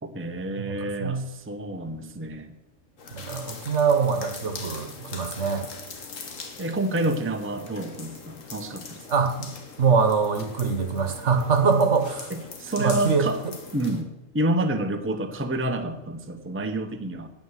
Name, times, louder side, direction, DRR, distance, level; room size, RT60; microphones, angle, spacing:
voice 1, 0.0-2.5 6.6-9.1 12.3-13.4 13.7-17.3, right 1 dB, 10° right, 7 dB, 0.8 m, -29 dB
sound 1, 3.0-14.0, left 4 dB, 85° left, 1.8 m, -42 dB
voice 2, 3.1-5.6 9.1-9.5 9.8-12.3 12.8-13.3, right 5 dB, 65° right, 8 dB, 1.5 m, -23 dB
9.5 x 8.9 x 7.4 m, 1.0 s
omnidirectional pair, 1.3 m